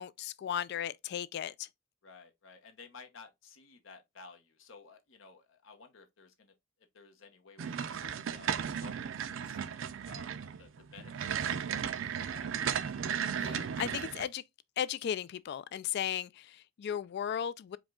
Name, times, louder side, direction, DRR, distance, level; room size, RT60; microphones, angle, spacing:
voice 1, 0.0-1.7 13.4-14.4 14.8-17.8, left 9 dB, 60° left, 0.3 m, -36 dB
voice 2, 2.0-6.5 6.9-8.5 8.8-10.3 10.6-11.7 12.3-13.3, left 5 dB, 90° left, 0.9 m, -55 dB
sound 1, 7.6-14.3, right 8 dB, 80° right, 0.4 m, -35 dB
4.9 x 2.2 x 3.6 m
head